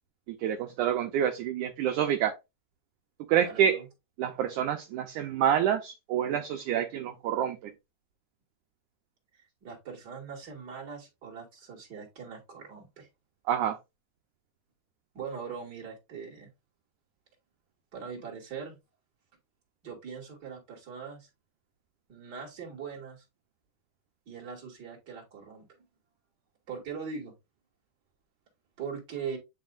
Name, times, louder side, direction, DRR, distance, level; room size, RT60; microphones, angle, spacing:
voice 1, 0.3-2.3 3.3-3.8 4.2-7.7 13.5-13.8, right 9 dB, 75° right, 5 dB, 2.0 m, -27 dB
voice 2, 3.4-3.8 9.6-13.1 15.1-16.5 17.9-18.8 19.8-21.3 22.1-23.2 24.3-25.7 26.7-27.3 28.8-29.4, right 6 dB, 30° right, -1 dB, 3.0 m, -41 dB
10.5 x 4.2 x 2.6 m, 0.23 s
omnidirectional pair, 4.3 m